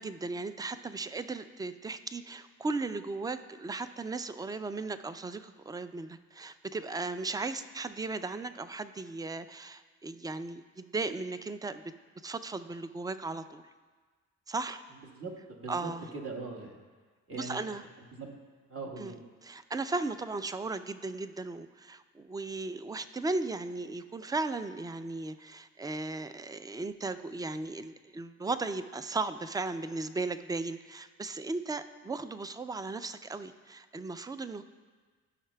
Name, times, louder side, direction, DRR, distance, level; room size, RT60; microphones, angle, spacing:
voice 1, 0.0-11.9 12.2-13.6 14.5-14.8 15.7-16.1 17.3-17.8 19.0-19.1 19.4-34.6, right 3 dB, 15° right, 12 dB, 0.3 m, -36 dB
voice 2, 15.1-16.8 17.3-17.8 18.1-18.3 18.7-19.2, right 3 dB, 50° right, 1 dB, 1.5 m, -41 dB
13.5 x 5.7 x 2.3 m, 1.4 s
cardioid pair, 75°, 29 cm